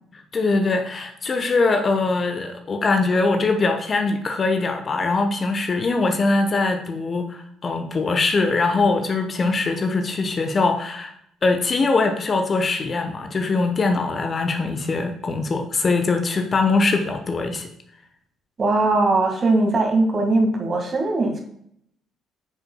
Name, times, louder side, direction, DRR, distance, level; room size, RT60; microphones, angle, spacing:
voice 1, 0.1-11.1 11.4-17.7, left 3 dB, 35° left, 6 dB, 0.9 m, -22 dB
voice 2, 18.6-21.4, right 2 dB, 35° right, 2 dB, 1.9 m, -20 dB
8.3 x 6.8 x 2.3 m, 0.70 s
figure-of-eight pair, 45°, 0 cm